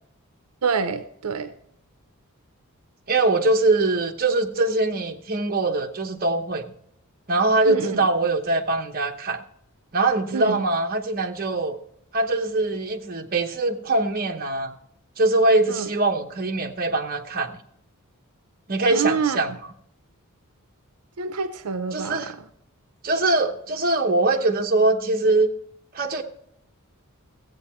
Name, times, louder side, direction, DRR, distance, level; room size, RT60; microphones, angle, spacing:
voice 1, 0.6-1.5 7.7-8.1 10.3-10.6 15.7-15.9 18.9-19.6 21.2-22.5, right 5 dB, 80° right, 0.6 m, -27 dB
voice 2, 3.1-6.7 7.3-9.4 9.9-11.8 12.1-14.7 15.2-17.6 18.7-19.5 21.9-22.3 23.0-25.5 25.9-26.2, right 2 dB, 40° right, 1.0 m, -22 dB
15.0 x 8.3 x 4.3 m
head